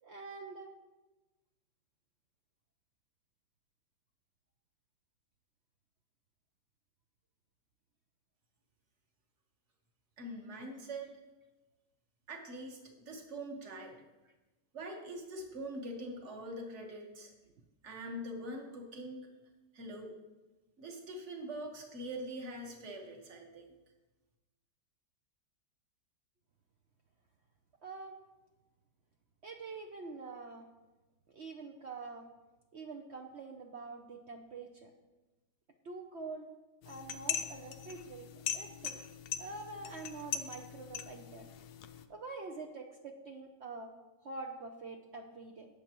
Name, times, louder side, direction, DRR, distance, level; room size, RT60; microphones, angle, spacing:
voice 1, 0.0-0.7 27.8-28.2 29.4-30.7 31.3-32.3 32.7-34.9 35.8-36.5 36.8-39.0 39.4-41.5 42.1-43.9 44.2-45.7, right 3 dB, 60° right, 2 dB, 0.7 m, -46 dB
voice 2, 10.2-11.1 12.3-13.9 14.7-17.3 17.8-19.3 19.7-20.2 20.8-23.7, right 1 dB, 45° right, 2 dB, 1.6 m, -43 dB
sound 1, 36.8-42.0, left 8 dB, 70° left, 1.1 m, -41 dB
17.5 x 6.9 x 3.0 m, 1.1 s
omnidirectional pair, 1.9 m